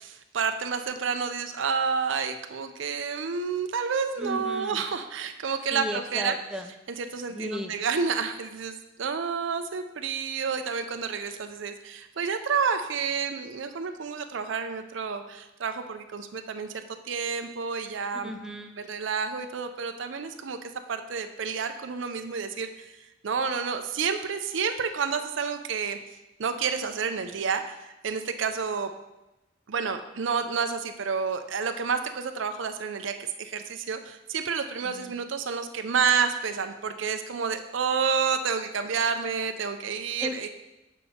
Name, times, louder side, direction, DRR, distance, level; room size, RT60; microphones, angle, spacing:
voice 1, 0.0-6.4 7.0-18.3 18.9-20.6 20.9-22.9 23.2-26.0 26.4-28.9 29.7-40.5, right 6 dB, 65° right, 8 dB, 0.5 m, -29 dB
voice 2, 4.2-4.8 5.7-6.7 7.3-7.7 18.1-18.7 34.8-35.1 40.2-40.5, equal, 5° right, 4 dB, 0.4 m, -35 dB
7.4 x 5.4 x 4.3 m, 0.99 s
head